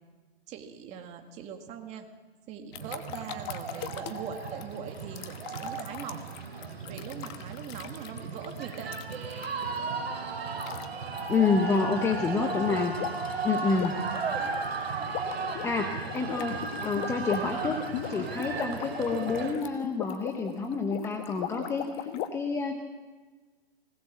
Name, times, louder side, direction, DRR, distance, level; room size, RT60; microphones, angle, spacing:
voice 1, 0.5-2.1 2.5-6.2 6.9-8.9 12.3-12.8 14.3-14.5, right 7 dB, 20° right, 5 dB, 1.9 m, -41 dB
sound 1, 2.7-9.8 10.6-10.9 11.2-11.4 13.0-13.3 13.6-22.3, left 11 dB, 25° left, 1.2 m, -39 dB
sound 2, 2.7-19.5, right 4 dB, 70° right, 5.9 m, -35 dB
voice 2, 11.3-12.9 13.4-14.0 15.6-17.8 18.1-22.8, left 4 dB, 10° left, 4 dB, 0.9 m, -28 dB
20.0 x 18.0 x 7.4 m, 1.3 s
hypercardioid pair, 150°, 31 cm